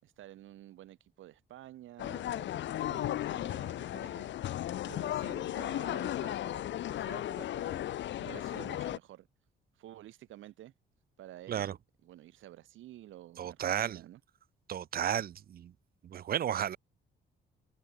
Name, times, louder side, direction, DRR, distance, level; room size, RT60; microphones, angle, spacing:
voice 1, 0.0-4.3 4.8-7.9 8.2-9.3 9.8-10.7 11.2-11.7 12.0-14.2, right 13 dB, 80° right, 3.9 m, -51 dB
sound 1, 2.0-9.0, left 13 dB, 65° left, 0.7 m, -35 dB
voice 2, 13.4-14.0 14.7-15.7 16.0-16.8, right 10 dB, 50° right, 0.6 m, -33 dB
cardioid pair, 90°, 20 cm